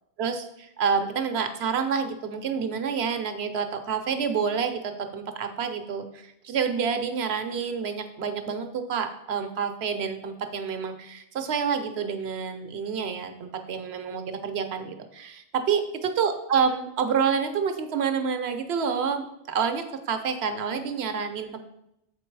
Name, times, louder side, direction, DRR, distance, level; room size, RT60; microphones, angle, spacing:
voice 1, 0.2-21.6, right 6 dB, 65° right, 7 dB, 1.0 m, -28 dB
7.4 x 4.5 x 4.6 m, 0.81 s
omnidirectional pair, 1.2 m